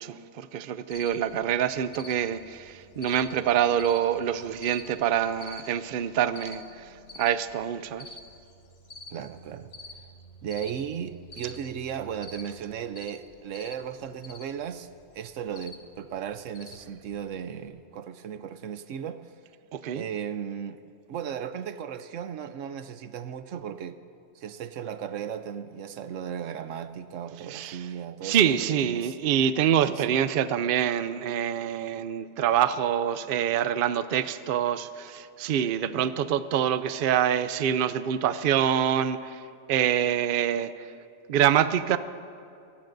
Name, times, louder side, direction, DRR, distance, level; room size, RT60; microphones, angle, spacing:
voice 1, 0.0-8.1 19.7-20.1 27.5-27.9 28.2-39.4 39.7-40.9 41.3-42.0, right 9 dB, 60° right, 12 dB, 0.6 m, -26 dB
Cricket, 0.9-17.7, left 2 dB, 55° left, 1.6 m, -49 dB
voice 2, 9.1-9.7 10.4-14.9 15.1-19.2 19.9-20.8 21.1-24.0 24.4-29.1 29.9-30.2 35.9-36.2, right 8 dB, 90° right, 11 dB, 1.1 m, -36 dB
28.5 x 17.0 x 2.6 m, 2.5 s
omnidirectional pair, 1.2 m